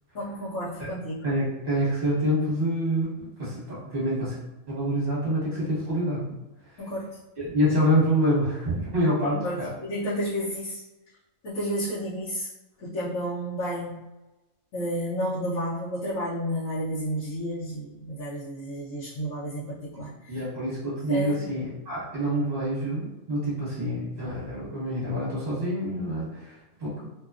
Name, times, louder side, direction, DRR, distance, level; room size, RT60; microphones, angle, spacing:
voice 1, 0.1-1.2 6.8-7.1 9.3-10.8 11.4-12.5 12.8-14.0 14.7-20.4 21.1-21.4, equal, 70° left, -10 dB, 1.0 m, -31 dB
voice 2, 1.2-4.3 4.7-6.3 7.4-9.7 19.9-20.0 20.3-27.1, equal, 30° right, -8 dB, 1.1 m, -27 dB
2.7 x 2.2 x 2.3 m, 1.0 s
omnidirectional pair, 1.4 m